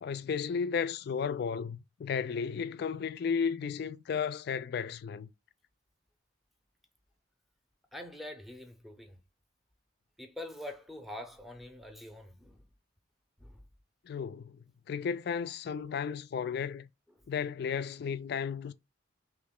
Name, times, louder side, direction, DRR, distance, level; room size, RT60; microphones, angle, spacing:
voice 1, 0.0-5.3 14.1-14.6 14.9-16.9 17.3-18.7, left 6 dB, 55° left, 0.3 m, -34 dB
voice 2, 7.9-9.2 10.2-12.7 13.4-13.6, left 1 dB, ahead, 0.6 m, -45 dB
3.1 x 3.0 x 3.6 m
head